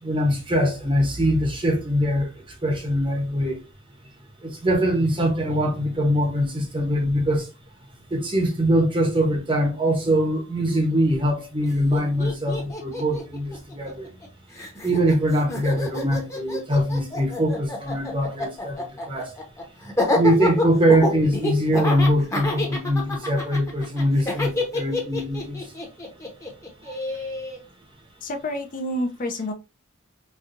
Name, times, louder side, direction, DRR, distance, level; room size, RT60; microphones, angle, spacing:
voice 1, 0.0-2.3 2.6-3.6 4.4-7.5 8.1-14.1 14.8-19.3 20.1-25.7, equal, 25° right, 0.8 m, -22 dB
Laughter, 11.6-11.7 11.9-14.3 14.5-27.6, left 2 dB, 15° left, 0.9 m, -28 dB
voice 2, 28.2-29.5, left 1 dB, 40° left, 0.5 m, -28 dB
4.2 x 2.3 x 2.5 m
head